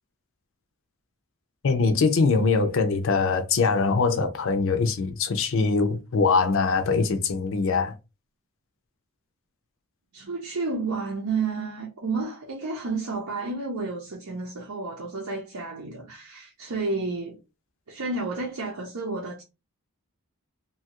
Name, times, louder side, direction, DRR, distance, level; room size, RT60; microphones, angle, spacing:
voice 1, 1.6-7.9, left 4 dB, 60° left, 0.5 m, -22 dB
voice 2, 10.1-17.4 17.9-19.4, right 3 dB, 80° right, 0.7 m, -31 dB
2.7 x 2.3 x 2.8 m
head